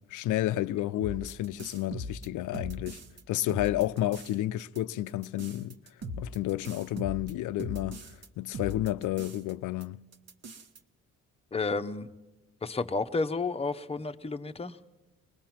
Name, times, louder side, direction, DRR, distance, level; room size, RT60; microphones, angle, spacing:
voice 1, 0.1-3.0 3.3-5.8 6.2-8.0 8.4-10.0, left 14 dB, 80° left, 0.6 m, -31 dB
sound 1, 1.0-3.2 3.5-4.3 4.6-8.3 8.5-9.5 9.8-9.9 10.1-10.8, equal, 55° right, 1.3 m, -40 dB
voice 2, 11.5-12.1 12.6-14.8, left 3 dB, 20° left, 0.8 m, -31 dB
24.0 x 19.5 x 5.9 m
cardioid pair, 90°, 30 cm